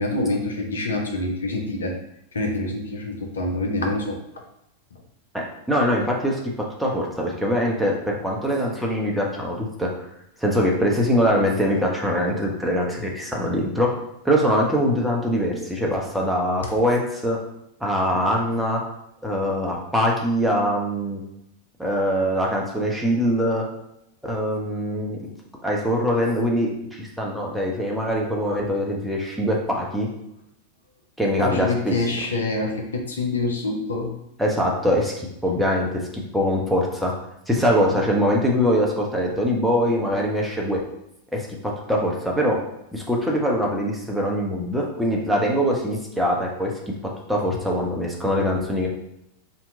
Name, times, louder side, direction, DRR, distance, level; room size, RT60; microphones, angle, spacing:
voice 1, 0.0-1.9 2.3-4.2 31.4-34.2, left 2 dB, 70° left, 1 dB, 0.5 m, -26 dB
voice 2, 5.3-6.4 6.8-9.9 10.4-13.9 14.2-17.4 17.8-18.8 19.2-21.2 21.8-23.6 24.2-25.2 25.6-30.1 31.2-32.0 34.4-36.0 36.3-37.1 37.5-40.8 41.3-42.6 42.9-46.7 47.3-48.9, equal, ahead, -3 dB, 0.6 m, -23 dB
2.8 x 2.2 x 3.7 m, 0.82 s
figure-of-eight pair, 90°, 0 cm